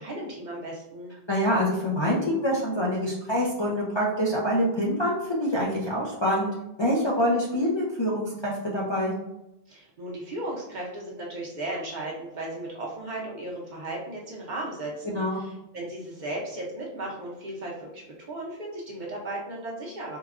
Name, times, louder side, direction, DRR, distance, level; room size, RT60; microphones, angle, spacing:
voice 1, 0.0-1.1 9.7-20.2, right 1 dB, 50° right, -3 dB, 0.8 m, -36 dB
voice 2, 1.3-6.5 6.8-9.1 15.0-15.4, equal, 35° left, -6 dB, 0.5 m, -25 dB
4.6 x 2.2 x 2.4 m, 0.87 s
omnidirectional pair, 1.1 m